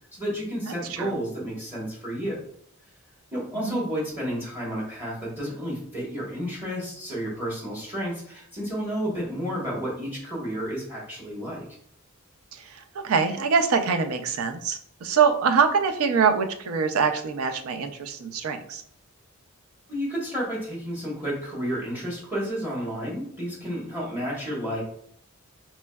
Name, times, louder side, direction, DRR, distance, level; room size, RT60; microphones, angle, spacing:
voice 1, 0.1-2.4 3.3-11.6 19.9-24.8, equal, 10° right, -4 dB, 1.1 m, -31 dB
voice 2, 0.6-1.2 3.5-3.8 12.5-18.8, right 6 dB, 70° right, 7 dB, 0.4 m, -24 dB
4.3 x 3.0 x 2.2 m, 0.66 s
head